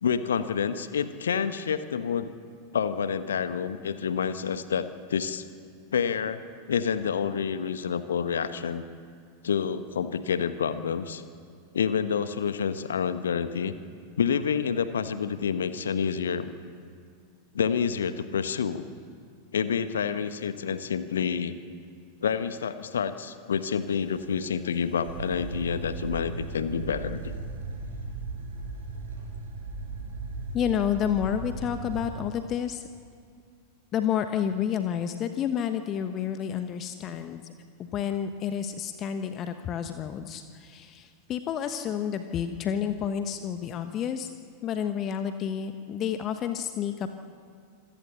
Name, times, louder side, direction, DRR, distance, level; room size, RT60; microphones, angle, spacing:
voice 1, 0.0-2.3 2.7-5.4 5.9-6.4 6.7-8.8 9.4-11.2 11.7-13.7 14.2-16.5 17.5-18.8 19.5-21.6 22.2-27.3, left 7 dB, 65° left, 12 dB, 1.1 m, -28 dB
sound 1, 23.6-32.1, right 3 dB, 65° right, 5.7 m, -37 dB
voice 2, 30.5-32.8 33.9-37.4 37.8-44.3 44.6-47.1, left 9 dB, 30° left, 9 dB, 1.1 m, -30 dB
26.5 x 16.5 x 7.1 m, 2.2 s
figure-of-eight pair, 90°, 0 cm